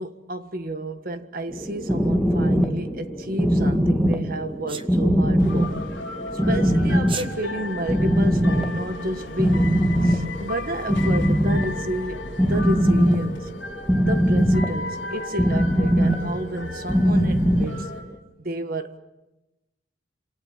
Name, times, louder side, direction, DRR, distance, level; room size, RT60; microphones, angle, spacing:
voice 1, 0.0-5.8 6.5-13.5 14.1-17.9 18.4-19.0, right 1 dB, 45° right, 1.6 m, -31 dB
sound 1, 1.5-18.2, equal, ahead, 2.0 m, -22 dB
Sneeze, 4.7-4.9 7.0-7.3, right 6 dB, 25° right, 1.2 m, -32 dB
sound 2, 5.4-18.0, left 3 dB, 65° left, 4.5 m, -36 dB
28.5 x 27.0 x 7.4 m
head